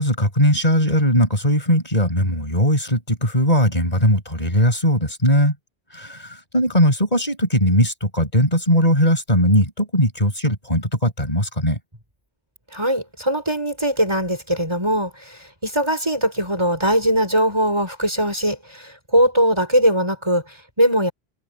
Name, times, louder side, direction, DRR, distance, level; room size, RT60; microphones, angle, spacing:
voice 1, 0.0-5.5 5.9-11.8, equal, 40° left, 6.4 m, -19 dB
voice 2, 12.7-21.1, equal, 25° right, 5.5 m, -20 dB
omnidirectional pair, 1.0 m